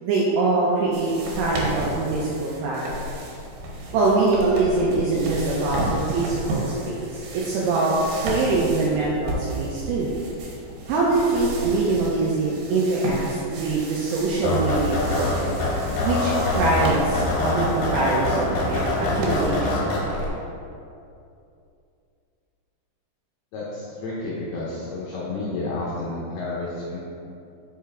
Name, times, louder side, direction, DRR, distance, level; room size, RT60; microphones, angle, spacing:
voice 1, 0.0-3.1 3.9-7.9 8.2-10.1 10.9-15.6 16.0-19.7, right 3 dB, 85° right, -4 dB, 2.5 m, -23 dB
sound 1, 0.9-19.5, right 1 dB, 70° right, 2.6 m, -33 dB
sound 2, 14.4-20.3, left 2 dB, 65° left, 2.2 m, -24 dB
voice 2, 23.5-27.0, left 2 dB, 85° left, -6 dB, 2.2 m, -31 dB
6.3 x 5.6 x 3.5 m, 2.6 s
omnidirectional pair, 5.5 m